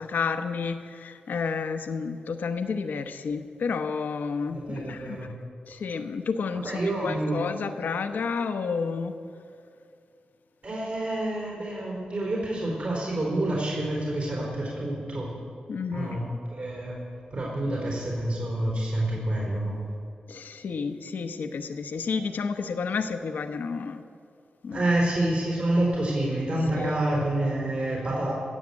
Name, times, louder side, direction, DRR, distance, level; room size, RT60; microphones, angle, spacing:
voice 1, 0.0-5.3 5.7-9.2 15.7-16.2 18.9-19.0 20.3-24.0 24.6-24.9 26.7-27.0, left 5 dB, 80° left, 8 dB, 0.9 m, -31 dB
voice 2, 4.5-5.3 6.6-7.4 10.6-15.3 15.9-16.2 16.5-16.9 17.3-19.8 24.7-28.3, right 1 dB, 60° right, -4 dB, 4.3 m, -28 dB
16.5 x 7.3 x 8.2 m, 2.4 s
cardioid pair, 60°, 3 cm